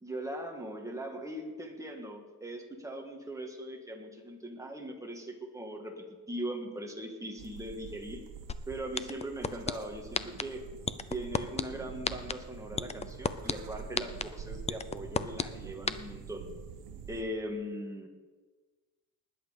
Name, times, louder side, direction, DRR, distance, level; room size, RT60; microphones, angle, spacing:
voice 1, 0.0-8.2 8.7-10.6 11.1-16.5 17.1-18.1, right 1 dB, 10° right, 2 dB, 1.6 m, -40 dB
sound 1, 7.4-17.2, right 7 dB, 75° right, 1.4 m, -46 dB
sound 2, 8.5-8.6 9.0-9.7 10.1-10.4 10.9-11.6 12.0-12.3 12.8-13.5 14.0-14.2 14.7-15.4 15.9-16.0, left 5 dB, 20° left, 0.4 m, -29 dB
19.5 x 8.7 x 5.1 m, 1.3 s
cardioid pair, 160°, 36 cm